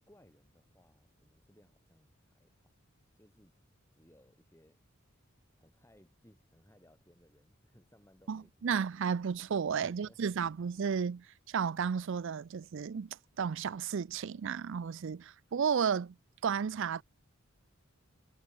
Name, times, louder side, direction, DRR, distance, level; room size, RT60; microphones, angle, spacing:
voice 1, 0.0-2.7 3.1-3.6 3.9-4.8 5.6-8.7 9.7-10.6, equal, 10° left, 5.5 m, -64 dB
voice 2, 8.3-16.1 16.4-17.0, right 6 dB, 60° right, 0.4 m, -33 dB
head